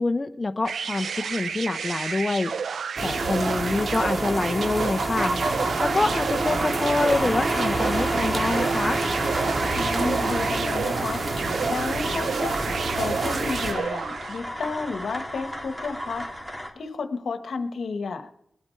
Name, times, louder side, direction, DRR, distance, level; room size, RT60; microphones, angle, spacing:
voice 1, 0.0-2.5 3.0-5.3 5.8-9.0, left 3 dB, 40° left, 8 dB, 0.8 m, -26 dB
sound 1, 0.6-14.5, right 6 dB, 90° right, 0.4 m, -32 dB
sound 2, 3.0-13.7, right 2 dB, 60° right, 2.0 m, -27 dB
sound 3, 7.0-16.7, equal, 10° right, 2.8 m, -35 dB
voice 2, 9.7-11.2 11.7-16.3 16.7-18.3, left 4 dB, 85° left, 8 dB, 1.2 m, -32 dB
21.0 x 8.8 x 4.6 m, 0.72 s
cardioid pair, 55°, 0 cm